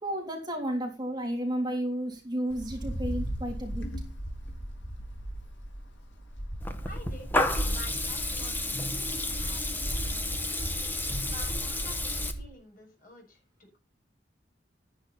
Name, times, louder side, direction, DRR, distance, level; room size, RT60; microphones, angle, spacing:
voice 1, 0.0-3.9 10.2-10.3, right 1 dB, 25° right, 1 dB, 3.2 m, -32 dB
Wind, 2.5-12.5, equal, 80° left, 3.9 m, -36 dB
Water tap faucet / Liquid, 6.6-12.3, left 2 dB, 10° left, 1.5 m, -31 dB
voice 2, 6.9-7.4 7.7-9.0 9.4-10.6 11.2-13.4, left 1 dB, 50° left, 2 dB, 7.0 m, -49 dB
12.5 x 10.5 x 4.2 m, 0.30 s
head